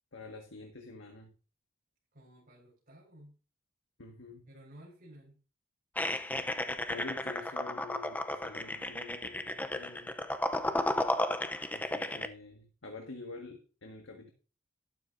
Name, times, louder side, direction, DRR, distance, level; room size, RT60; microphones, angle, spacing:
voice 1, 0.1-1.3 4.0-4.5 6.4-10.1 11.7-14.3, left 3 dB, 80° left, 3 dB, 1.7 m, -47 dB
voice 2, 2.1-3.4 4.5-5.4, right 1 dB, 50° right, -5 dB, 5.0 m, -54 dB
sound 1, 6.0-12.3, left 1 dB, 10° left, 0.6 m, -33 dB
12.5 x 12.0 x 2.6 m, 0.36 s
head